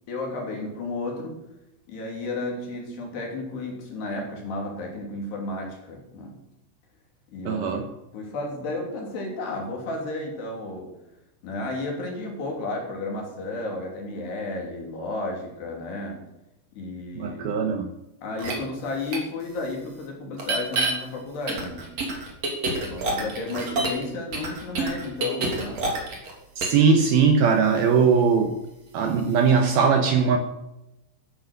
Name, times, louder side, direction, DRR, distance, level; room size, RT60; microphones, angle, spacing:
voice 1, 0.1-1.4 1.9-6.3 7.3-10.9 11.4-16.2 16.7-17.6 18.2-21.9 22.8-26.0, left 2 dB, 60° left, 0 dB, 5.0 m, -33 dB
voice 2, 7.5-7.8 17.2-17.9 26.6-28.5 28.9-30.4, right 5 dB, 75° right, 5 dB, 2.3 m, -20 dB
sound 1, 18.4-18.5 19.1-19.2 20.4-20.9 21.5-24.0 24.3-26.3 26.6-26.8, right 3 dB, 35° right, 3.6 m, -27 dB
14.0 x 11.0 x 6.7 m, 0.89 s
omnidirectional pair, 5.7 m